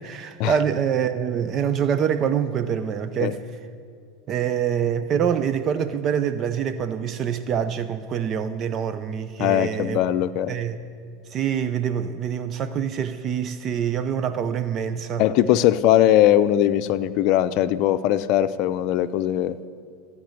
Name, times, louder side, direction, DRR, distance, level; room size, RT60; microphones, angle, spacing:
voice 1, 0.0-3.4 4.3-10.0 10.5-10.8 11.3-15.2, right 8 dB, 40° right, 11 dB, 0.5 m, -25 dB
voice 2, 9.4-10.5 15.2-19.6, left 12 dB, 55° left, 12 dB, 0.6 m, -20 dB
15.0 x 5.3 x 9.4 m, 2.3 s
hypercardioid pair, 105°, 0 cm